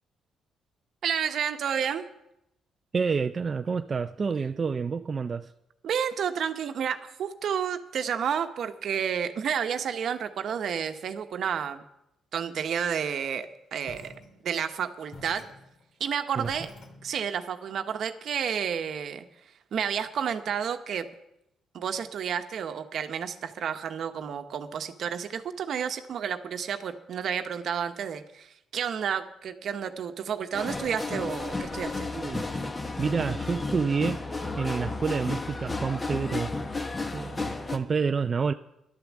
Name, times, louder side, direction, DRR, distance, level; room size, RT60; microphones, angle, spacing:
voice 1, 1.0-2.1 5.8-11.8 12.3-14.1 14.4-15.4 16.0-16.7 17.0-19.2 19.7-21.1 21.7-32.1, right 8 dB, 65° right, 1.1 m, -31 dB
voice 2, 2.9-5.5 16.4-16.5 32.1-32.5 33.0-34.3 34.6-36.5 37.1-38.5, right 5 dB, 40° right, 0.5 m, -28 dB
sound 1, 13.8-14.7 15.1-17.5, left 2 dB, 60° left, 3.3 m, -49 dB
sound 2, 30.5-37.8, left 3 dB, 25° left, 1.4 m, -33 dB
11.5 x 10.5 x 7.4 m
cardioid pair, 90°, 0 cm